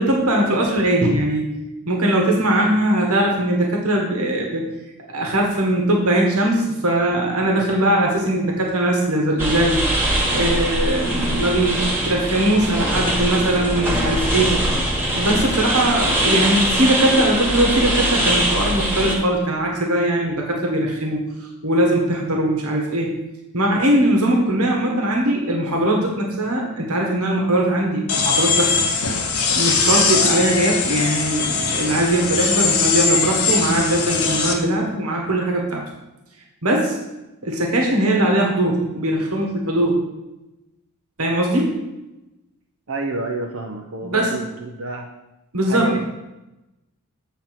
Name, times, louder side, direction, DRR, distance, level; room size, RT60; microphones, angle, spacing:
voice 1, 0.0-1.5 1.8-4.7 5.1-9.8 10.3-14.6 15.1-21.3 21.6-23.2 23.5-29.1 29.5-35.8 36.6-37.0 37.4-40.0 41.2-41.7 44.0-44.3 45.5-45.9, right 1 dB, 85° right, 0 dB, 1.6 m, -20 dB
sound 1, 9.4-19.1, right 1 dB, 10° right, 1.5 m, -22 dB
sound 2, 28.1-34.5, left 5 dB, 85° left, 1.1 m, -20 dB
voice 2, 42.9-45.1 45.7-46.1, right 3 dB, 65° right, 1 dB, 0.7 m, -29 dB
8.2 x 4.1 x 5.9 m, 0.98 s
head